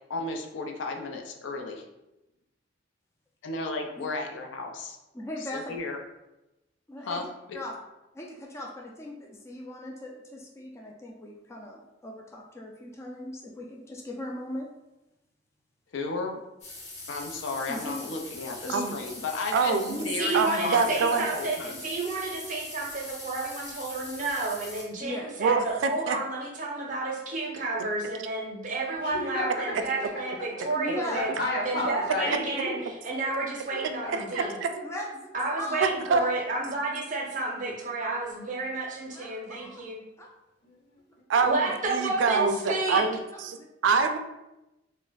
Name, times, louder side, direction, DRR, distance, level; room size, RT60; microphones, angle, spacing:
voice 1, 0.1-1.9 3.4-5.0 5.5-6.0 7.1-7.6 15.9-16.4 17.1-21.8, left 3 dB, 80° left, 3 dB, 0.4 m, -34 dB
voice 2, 5.1-5.8 6.9-7.2 7.5-7.8 8.1-14.7 17.7-18.1 18.6-19.2 19.9-20.2 25.0-25.3 30.7-31.2 34.8-35.3 35.6-35.9 36.1-36.4 39.1-39.8 40.2-40.3 41.8-41.9 43.3-43.6, left 1 dB, 15° left, 0 dB, 0.3 m, -38 dB
sound 1, 16.6-24.8, left 2 dB, 40° left, 0.7 m, -42 dB
voice 3, 19.5-20.0 20.3-21.2 25.4-26.2 32.3-32.4 34.1-34.4 35.8-36.2 41.3-43.6 43.8-44.2, right 5 dB, 85° right, 8 dB, 0.3 m, -25 dB
voice 4, 20.2-31.3 31.7-32.8 33.0-34.5 35.3-40.0 41.4-43.0, right 2 dB, 45° right, -2 dB, 0.6 m, -31 dB
voice 5, 29.0-29.6 30.6-30.7 31.1-32.8 33.2-33.3 33.7-34.1 39.5-39.6 40.6-41.2, left 1 dB, 60° left, -4 dB, 1.0 m, -33 dB
2.3 x 2.1 x 3.9 m, 0.95 s
head